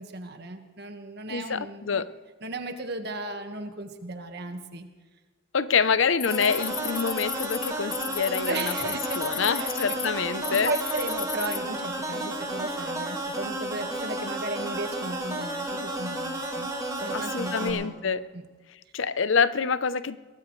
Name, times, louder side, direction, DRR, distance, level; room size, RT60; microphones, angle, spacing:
voice 1, 0.0-2.0 2.4-4.9 8.4-10.0 10.5-16.7 17.0-18.4, right 2 dB, 55° right, 6 dB, 1.6 m, -35 dB
voice 2, 1.3-2.1 5.5-8.7 9.2-10.7 17.1-18.2 18.9-20.2, left 6 dB, 75° left, 15 dB, 0.7 m, -26 dB
sound 1, 6.2-10.1 10.4-11.6, left 10 dB, 25° left, 0.5 m, -35 dB
sound 2, 6.3-17.7, right 1 dB, 15° right, 4.3 m, -32 dB
22.5 x 18.0 x 3.2 m, 1.4 s
head